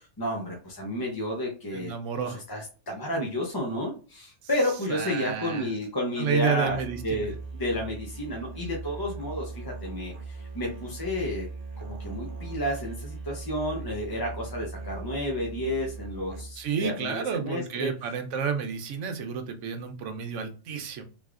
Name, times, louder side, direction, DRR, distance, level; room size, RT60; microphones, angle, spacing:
voice 1, 0.0-1.9 2.2-6.8 7.0-11.5 11.8-17.9, left 1 dB, 25° left, -1 dB, 0.6 m, -31 dB
voice 2, 1.7-2.4 4.9-5.7 6.2-7.3 16.6-21.0, right 7 dB, 85° right, 7 dB, 1.0 m, -31 dB
Musical instrument, 6.6-16.8, right 4 dB, 45° right, 1.2 m, -39 dB
3.4 x 3.1 x 2.4 m, 0.35 s
omnidirectional pair, 1.2 m